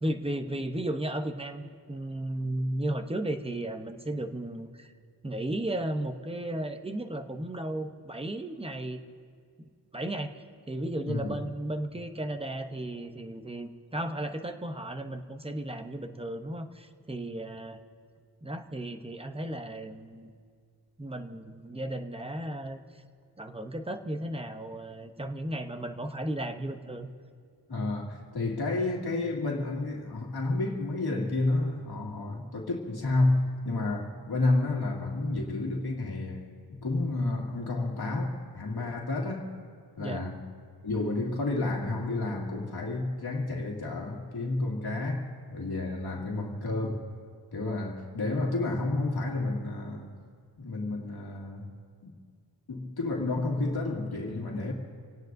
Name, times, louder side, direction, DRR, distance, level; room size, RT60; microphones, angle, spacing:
voice 1, 0.0-4.9 5.2-9.0 9.9-17.8 18.4-20.3 21.0-23.0 23.4-27.1 40.0-40.2, right 1 dB, 15° right, 0.8 m, -34 dB
voice 2, 11.0-11.4 27.7-39.5 40.0-40.4 40.8-47.0 47.5-50.2 50.6-51.7 52.0-52.2 52.7-54.7, left 2 dB, 60° left, 2.2 m, -30 dB
28.0 x 18.0 x 2.7 m
wide cardioid pair, 145°, 43 cm